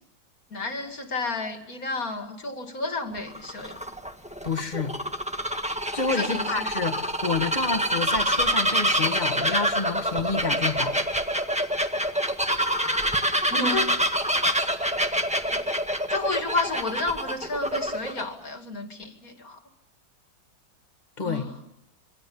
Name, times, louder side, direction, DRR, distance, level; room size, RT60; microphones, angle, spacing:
voice 1, 0.5-3.8 6.2-6.7 13.5-13.9 15.5-15.6 16.1-19.6 21.2-21.5, left 3 dB, 45° left, 5 dB, 2.8 m, -31 dB
Bird vocalization bird call bird song, 3.2-18.2, equal, 5° right, 1.4 m, -26 dB
voice 2, 4.4-4.9 5.9-11.1 21.2-21.5, left 4 dB, 25° left, 7 dB, 1.9 m, -29 dB
27.5 x 25.0 x 7.2 m, 0.76 s
omnidirectional pair, 2.1 m